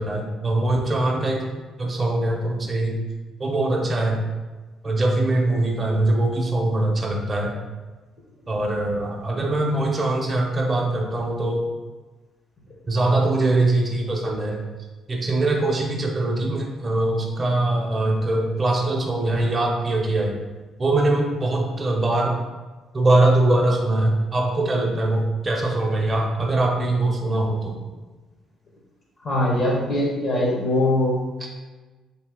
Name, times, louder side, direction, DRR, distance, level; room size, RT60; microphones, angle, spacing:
voice 1, 0.0-1.4 1.8-3.0 3.4-4.2 4.8-7.5 8.5-11.7 12.9-14.6 15.1-20.3 20.8-22.4 22.9-27.8, right 2 dB, 30° right, -1 dB, 0.6 m, -22 dB
voice 2, 29.2-31.1, left 1 dB, 55° left, -3 dB, 0.8 m, -21 dB
2.8 x 2.7 x 3.6 m, 1.3 s
cardioid pair, 85°, 0 cm